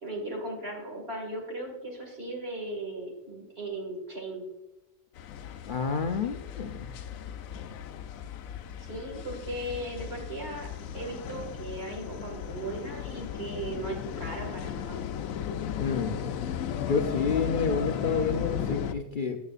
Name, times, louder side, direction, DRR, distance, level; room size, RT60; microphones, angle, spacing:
voice 1, 0.0-4.4 8.8-10.7 10.9-15.0, right 1 dB, 45° right, 1 dB, 2.3 m, -37 dB
sound 1, 5.2-18.9, left 9 dB, 75° left, 1.0 m, -36 dB
voice 2, 5.7-6.9 15.8-16.2 16.8-19.4, left 5 dB, 55° left, 6 dB, 0.5 m, -29 dB
13.0 x 7.1 x 2.5 m, 1.0 s
omnidirectional pair, 1.4 m